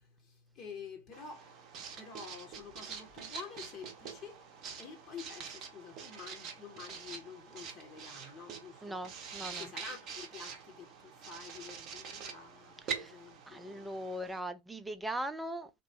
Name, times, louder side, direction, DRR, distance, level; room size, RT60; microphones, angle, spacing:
voice 1, 0.0-4.5 4.8-9.0 9.5-14.1, left 5 dB, 30° left, 0.9 m, -49 dB
Writing, 1.1-14.4, right 6 dB, 35° right, 0.7 m, -45 dB
voice 2, 8.8-9.7 12.9-13.2 13.5-15.7, right 1 dB, 5° right, 0.4 m, -40 dB
3.0 x 2.0 x 3.4 m
figure-of-eight pair, 90°, 0 cm